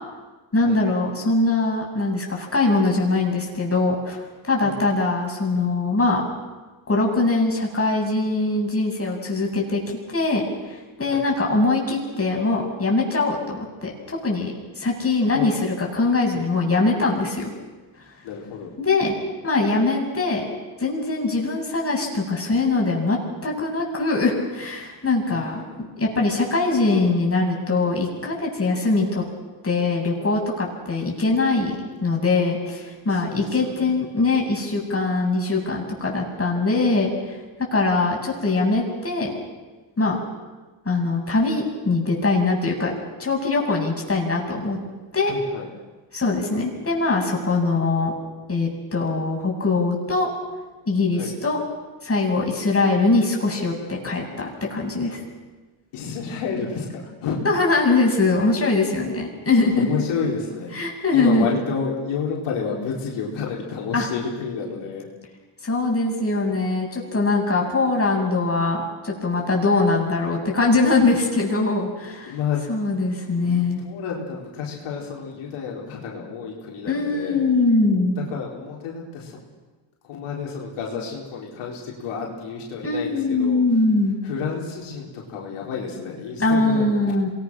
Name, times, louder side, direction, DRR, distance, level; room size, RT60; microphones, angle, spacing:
voice 1, 0.5-6.2 6.9-17.5 18.8-19.1 19.4-20.4 20.8-29.2 29.6-39.3 40.0-40.2 40.8-42.9 43.2-44.8 45.1-45.3 46.1-48.1 48.5-50.3 50.9-51.6 52.0-55.2 57.4-59.9 60.7-61.5 63.9-64.1 65.6-72.4 72.7-73.8 76.9-78.2 82.8-84.2 86.4-87.3, left 3 dB, 30° left, -1 dB, 7.7 m, -22 dB
voice 2, 18.2-18.7 21.3-21.4 25.3-25.7 33.2-33.9 45.2-45.7 51.2-51.3 54.4-54.5 55.9-57.4 59.8-60.8 61.1-65.1 72.3-72.6 73.4-77.4 78.2-79.4 80.0-83.6 84.2-87.1, left 6 dB, 85° left, -2 dB, 4.6 m, -30 dB
26.5 x 21.5 x 6.4 m, 1.3 s
cardioid pair, 75°, 49 cm